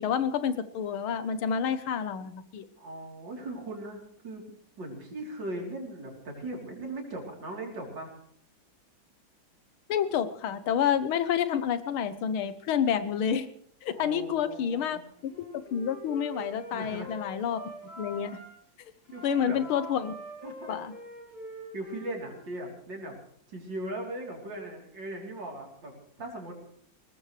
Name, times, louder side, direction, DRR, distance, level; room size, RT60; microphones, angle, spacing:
voice 1, 0.0-2.7 9.9-13.5 13.8-17.6 18.0-18.4 19.2-20.1 20.7-20.9, left 8 dB, 85° left, 12 dB, 1.8 m, -29 dB
voice 2, 2.8-4.4 4.8-8.1 13.9-15.0 16.7-17.1 19.1-19.6 20.4-20.8 21.7-23.1 23.5-25.9 26.2-26.6, right 1 dB, 60° right, 0 dB, 4.2 m, -39 dB
Wind instrument woodwind instrument, 15.2-18.5 19.0-22.6, equal, 65° left, 6.9 m, -44 dB
21.5 x 18.5 x 3.3 m, 0.64 s
omnidirectional pair, 2.3 m